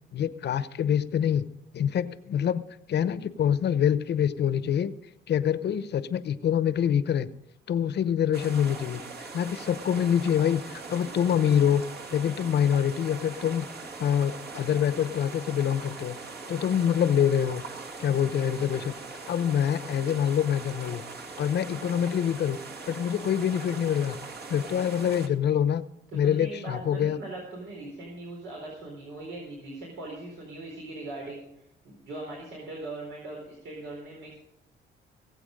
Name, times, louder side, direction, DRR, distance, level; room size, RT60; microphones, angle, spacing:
voice 1, 0.1-1.5 1.7-2.6 2.9-4.9 5.3-7.3 7.7-9.0 9.3-11.8 12.1-13.7 14.0-16.2 16.5-17.6 18.0-18.9 19.3-21.0 21.4-22.6 22.9-24.2 24.5-25.8 26.1-27.2, left 9 dB, 60° left, 13 dB, 0.8 m, -25 dB
sound 1, 8.3-25.3, right 3 dB, 55° right, 2.2 m, -41 dB
voice 2, 26.1-34.3, right 2 dB, 80° right, -2 dB, 4.2 m, -40 dB
19.5 x 8.2 x 5.2 m, 0.79 s
cardioid pair, 90°, 20 cm